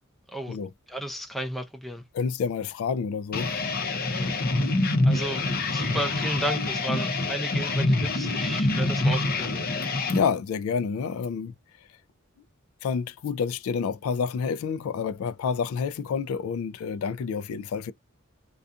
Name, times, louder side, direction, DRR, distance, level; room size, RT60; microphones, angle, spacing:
voice 1, 0.9-2.0 4.0-4.3 5.0-9.5, right 1 dB, ahead, 0.5 m, -33 dB
voice 2, 2.1-3.5 9.8-11.5 12.8-17.9, left 6 dB, 75° left, 0.3 m, -29 dB
sound 1, 3.3-10.2, left 2 dB, 45° left, 0.6 m, -26 dB
2.3 x 2.3 x 2.5 m
head